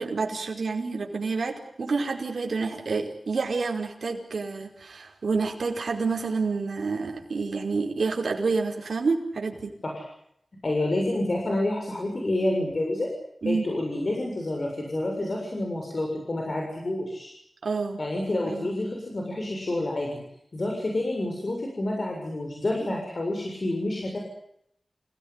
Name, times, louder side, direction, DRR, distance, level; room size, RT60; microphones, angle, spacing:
voice 1, 0.0-9.7 13.4-13.7 17.6-18.0 18.4-18.7 22.9-23.0, right 4 dB, 70° right, 1 dB, 4.9 m, -28 dB
voice 2, 10.6-13.1 13.5-17.3 18.0-20.1 20.5-24.2, left 1 dB, 45° left, 0 dB, 7.1 m, -28 dB
28.5 x 18.0 x 9.9 m, 0.74 s
wide cardioid pair, 90°, 0 cm